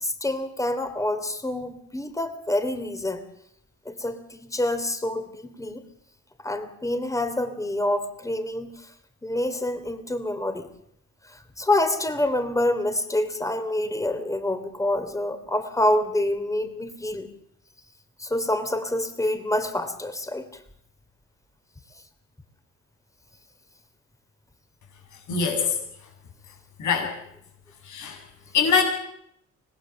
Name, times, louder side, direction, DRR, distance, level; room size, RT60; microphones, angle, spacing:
voice 1, 0.0-3.2 3.8-5.8 6.4-8.9 9.2-10.7 11.3-17.3 18.2-20.5, left 1 dB, 10° left, 9 dB, 3.0 m, -27 dB
voice 2, 25.3-25.8 26.8-27.1 27.8-28.2 28.5-28.8, left 6 dB, 75° left, 2 dB, 7.6 m, -23 dB
25.5 x 19.5 x 7.0 m, 0.73 s
cardioid pair, 90°, 30 cm